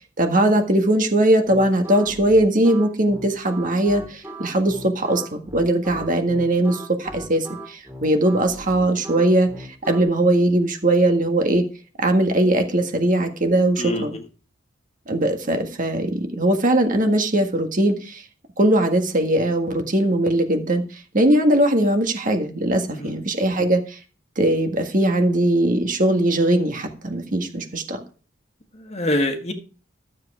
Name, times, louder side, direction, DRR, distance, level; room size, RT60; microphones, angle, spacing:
voice 1, 0.2-11.6 12.0-14.2 15.1-18.2 18.6-24.0 24.4-28.0, right 1 dB, 45° right, 6 dB, 1.7 m, -20 dB
sound 1, 1.4-10.0, right 1 dB, 10° right, 2.2 m, -38 dB
voice 2, 13.8-14.2 22.9-23.1 28.9-29.5, left 1 dB, 35° left, 7 dB, 1.5 m, -24 dB
12.5 x 7.7 x 4.9 m, 0.36 s
head